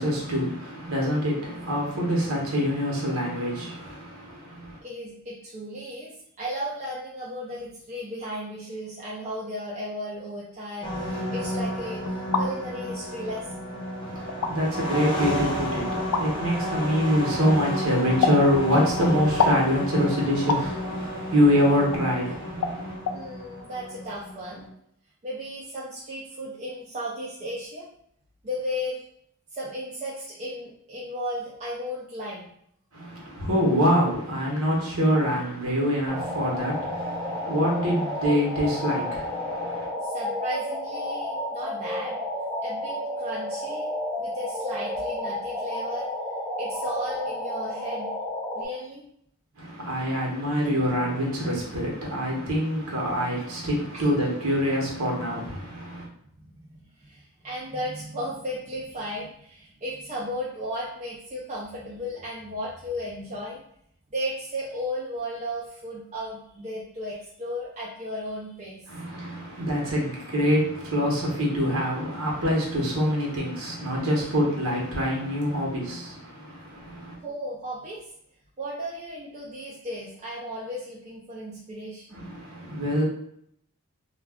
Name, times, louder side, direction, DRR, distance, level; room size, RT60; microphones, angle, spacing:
voice 1, 0.0-4.8 14.0-23.0 32.9-39.9 49.6-56.1 68.9-77.2 82.1-83.0, equal, 70° right, -3 dB, 0.9 m, -25 dB
voice 2, 4.8-13.7 23.1-24.6 25.2-27.9 28.4-29.0 29.5-32.5 40.0-42.2 42.6-43.9 44.2-46.1 46.6-48.1 48.5-49.0 53.4-53.5 53.9-54.1 56.4-63.6 64.1-68.8 77.2-78.1 78.6-82.3, equal, 30° right, -6 dB, 0.4 m, -35 dB
sound 1, 10.8-24.7, equal, 20° left, 0.6 m, -32 dB
sound 2, 12.1-12.5 13.4-13.5 14.3-14.5 16.1-16.3 18.2-18.4 19.4-19.6 20.5-20.7 21.9-22.0 22.6-22.8 23.1-23.2, left 4 dB, 85° left, 0.4 m, -24 dB
sound 3, 36.1-48.7, left 1 dB, ahead, 0.9 m, -31 dB
2.3 x 2.2 x 3.4 m, 0.69 s
head